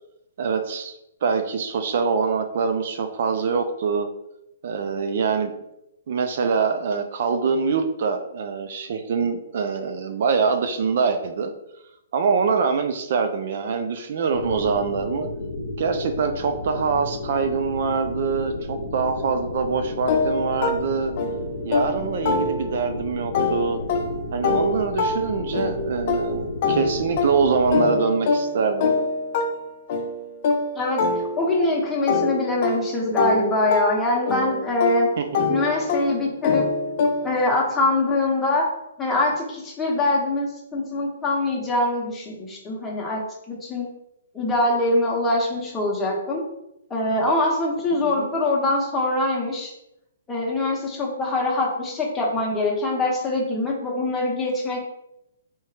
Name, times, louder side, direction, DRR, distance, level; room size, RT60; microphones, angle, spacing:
voice 1, 0.4-0.9 1.2-4.1 4.6-5.5 6.1-11.5 12.1-15.3 15.8-21.1 21.6-23.8 24.3-28.9 35.2-35.3 48.0-48.3, right 5 dB, 60° right, 7 dB, 0.4 m, -24 dB
sound 1, 14.3-27.8, left 2 dB, 90° left, 0.6 m, -33 dB
sound 2, 20.1-22.9 23.3-31.7 32.1-37.5, left 3 dB, 45° left, 0.5 m, -25 dB
voice 2, 30.7-35.1 35.5-36.6 37.2-38.6 39.0-43.2 43.5-43.9 44.3-46.4 46.9-49.7 50.3-54.8, left 2 dB, 15° left, -3 dB, 1.0 m, -23 dB
3.4 x 3.0 x 2.8 m, 0.84 s
hypercardioid pair, 140°, 0 cm